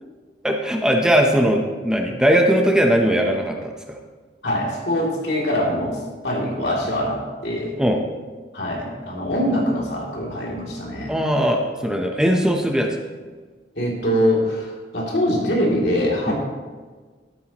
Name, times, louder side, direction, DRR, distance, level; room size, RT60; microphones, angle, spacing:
voice 1, 0.4-4.0 7.8-8.0 11.1-13.0 16.3-16.4, equal, 5° right, 2 dB, 0.8 m, -19 dB
voice 2, 4.4-7.7 8.5-11.1 13.7-16.3, equal, 75° left, -3 dB, 2.9 m, -23 dB
13.0 x 12.5 x 3.0 m, 1.4 s
head